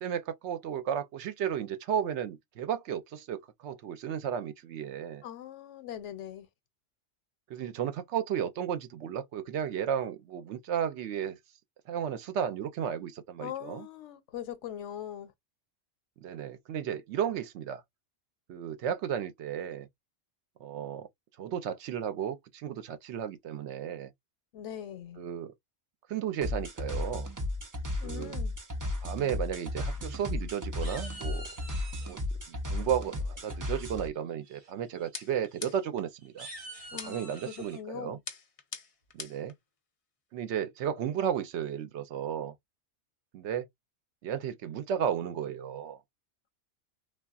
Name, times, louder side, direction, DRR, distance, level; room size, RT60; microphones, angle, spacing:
voice 1, 0.0-5.2 7.5-11.4 11.9-13.9 16.2-17.8 18.5-19.9 20.6-21.1 21.4-24.1 25.2-25.5 26.1-27.3 28.0-28.4 29.0-31.5 32.0-32.2 32.5-36.5 37.0-38.2 39.1-39.5 40.3-42.5 43.3-43.7 44.2-46.0, right 9 dB, 80° right, 0.9 m, -34 dB
voice 2, 5.2-6.5 13.4-15.3 24.5-25.2 28.0-28.6 36.9-38.2, left 10 dB, 90° left, 1.0 m, -41 dB
sound 1, 26.4-34.1, left 2 dB, 25° right, 0.4 m, -34 dB
sound 2, 30.0-30.4 30.8-32.2 33.6-34.0 34.4-34.7 35.0-35.1 35.5-35.6 36.2-37.8, right 2 dB, 45° right, 1.4 m, -47 dB
sound 3, 35.1-36.1 37.0-37.4 38.3-39.5, left 5 dB, 40° left, 0.6 m, -42 dB
3.5 x 2.3 x 2.3 m
omnidirectional pair, 1.2 m